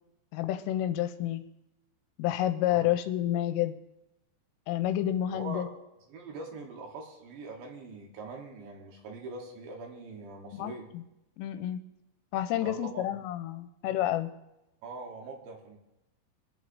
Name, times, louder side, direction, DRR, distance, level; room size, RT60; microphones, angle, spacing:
voice 1, 0.3-1.4 2.2-3.7 4.7-5.7 10.5-11.0 11.4-11.8 12.3-14.3, left 12 dB, 85° left, 9 dB, 3.2 m, -29 dB
voice 2, 5.3-5.7 6.1-10.9 12.6-13.1 14.8-15.8, right 3 dB, 70° right, 1 dB, 3.3 m, -42 dB
25.0 x 10.5 x 2.7 m, 0.93 s
omnidirectional pair, 5.8 m